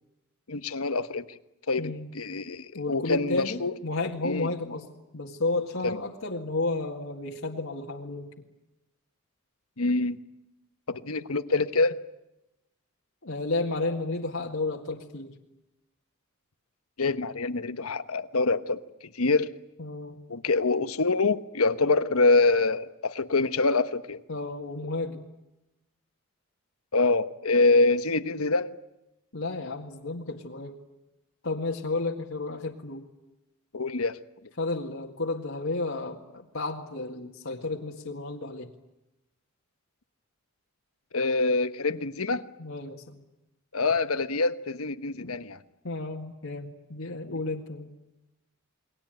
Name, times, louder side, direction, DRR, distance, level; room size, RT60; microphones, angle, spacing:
voice 1, 0.5-1.4 1.7-3.7 4.2-4.5 5.8-6.0 9.8-10.2 10.9-12.0 17.0-19.5 20.3-24.2 26.9-28.7 33.7-34.2 41.1-42.5 43.7-45.6, left 3 dB, 85° left, 11 dB, 1.2 m, -25 dB
voice 2, 1.8-2.1 2.7-4.9 5.1-8.3 13.2-15.3 19.8-20.2 24.3-25.2 29.3-30.7 31.4-33.1 34.6-38.7 42.6-43.2 45.2-45.4 45.8-47.9, left 2 dB, 65° left, -1 dB, 2.0 m, -32 dB
29.0 x 21.5 x 9.2 m, 0.94 s
head